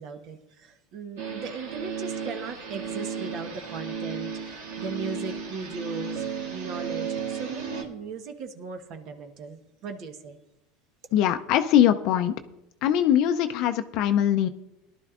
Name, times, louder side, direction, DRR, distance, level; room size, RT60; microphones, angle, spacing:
voice 1, 0.0-10.4, right 4 dB, 55° right, 1.2 m, -38 dB
sound 1, 1.2-7.8, right 6 dB, 85° right, 2.1 m, -34 dB
voice 2, 11.1-12.3 12.8-14.5, left 10 dB, 60° left, 0.5 m, -22 dB
18.0 x 11.5 x 2.5 m
supercardioid pair, 110°, 0 cm